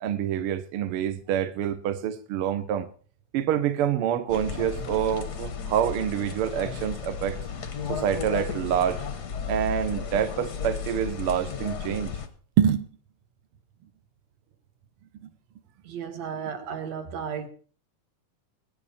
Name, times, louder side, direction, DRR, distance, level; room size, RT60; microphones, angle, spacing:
voice 1, 0.0-2.9 3.3-7.4 7.9-9.0 9.5-12.1 12.6-12.9 16.3-16.6, right 9 dB, 75° right, 1.3 m, -26 dB
sound 1, 4.3-12.3, left 6 dB, 65° left, 1.0 m, -34 dB
voice 2, 15.9-17.5, right 7 dB, 60° right, 2.5 m, -34 dB
21.0 x 9.8 x 4.2 m
omnidirectional pair, 3.8 m